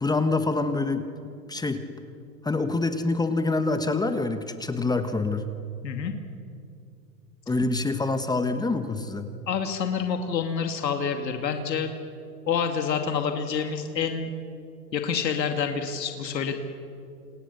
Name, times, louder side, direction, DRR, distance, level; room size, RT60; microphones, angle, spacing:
voice 1, 0.0-1.0 1.5-1.8 2.4-5.5 7.5-9.3, left 3 dB, 10° left, 8 dB, 1.3 m, -26 dB
voice 2, 9.5-11.9 12.5-14.3 14.9-16.6, left 6 dB, 80° left, 5 dB, 2.5 m, -27 dB
28.5 x 27.5 x 6.9 m, 2.4 s
hypercardioid pair, 115°, 50 cm